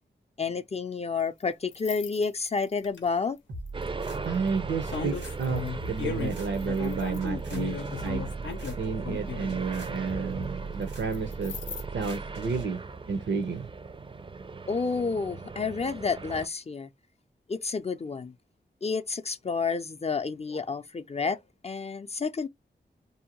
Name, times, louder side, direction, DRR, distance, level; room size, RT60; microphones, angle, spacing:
voice 1, 0.4-3.4 14.7-16.9 17.5-18.3 18.8-22.5, left 5 dB, 35° left, 0.4 m, -30 dB
sound 1, 1.7-3.0 3.9-4.1 4.9-9.6 11.1-11.8, left 6 dB, 85° left, 0.6 m, -36 dB
sound 2, 3.5-12.6, right 3 dB, 90° right, 1.3 m, -39 dB
sound 3, 3.7-16.5, right 4 dB, 25° right, 0.4 m, -39 dB
voice 2, 4.2-8.3 8.8-11.6 11.9-12.8 13.1-13.7, right 5 dB, 75° right, 0.6 m, -31 dB
2.7 x 2.1 x 2.9 m
cardioid pair, 45°, 19 cm